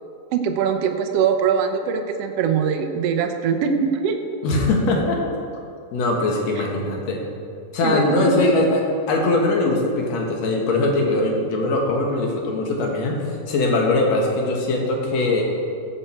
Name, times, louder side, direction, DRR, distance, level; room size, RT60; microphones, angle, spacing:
voice 1, 0.3-4.2 6.6-6.7 7.8-8.7, right 6 dB, 85° right, 5 dB, 1.4 m, -22 dB
voice 2, 4.4-5.2 5.9-7.2 7.7-8.8 9.1-15.4, left 2 dB, 55° left, 0 dB, 2.6 m, -21 dB
16.5 x 7.8 x 4.5 m, 2.4 s
omnidirectional pair, 3.9 m